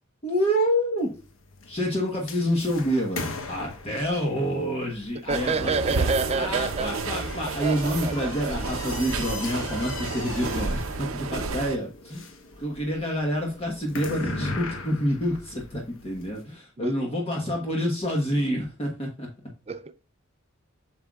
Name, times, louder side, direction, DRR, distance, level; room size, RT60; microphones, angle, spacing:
voice 1, 0.2-1.1 1.7-12.3 12.6-19.3, equal, 30° left, 1.2 m, -28 dB
sound 1, 1.0-16.4, left 3 dB, 80° left, 1.1 m, -40 dB
voice 2, 5.3-7.2 7.6-8.5 16.8-17.1 19.7-19.9, right 4 dB, 30° right, 0.4 m, -29 dB
sound 2, 5.3-11.8, right 4 dB, 85° right, 0.7 m, -31 dB
7.8 x 6.3 x 2.4 m
head